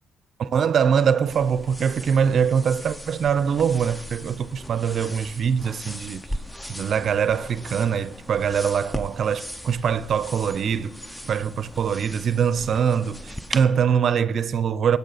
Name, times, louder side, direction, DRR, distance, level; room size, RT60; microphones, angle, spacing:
voice 1, 0.4-6.2 6.7-10.9 11.2-15.0, right 7 dB, 55° right, 0.5 m, -23 dB
sound 1, 1.3-13.6, equal, 10° left, 0.6 m, -38 dB
20.5 x 8.4 x 4.1 m
cardioid pair, 90°, 0 cm